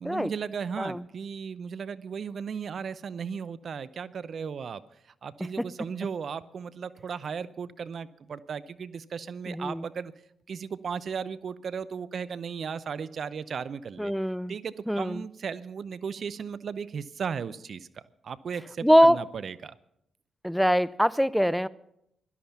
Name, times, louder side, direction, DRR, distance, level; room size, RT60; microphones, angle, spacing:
voice 1, 0.0-10.1 10.5-14.1 14.5-19.8, right 6 dB, 60° right, 16 dB, 0.7 m, -36 dB
voice 2, 9.5-9.9 14.0-14.5 14.9-15.2 18.8-19.2 20.4-21.7, equal, ahead, 18 dB, 0.6 m, -23 dB
17.0 x 12.5 x 5.7 m, 0.79 s
hypercardioid pair, 45°, 0 cm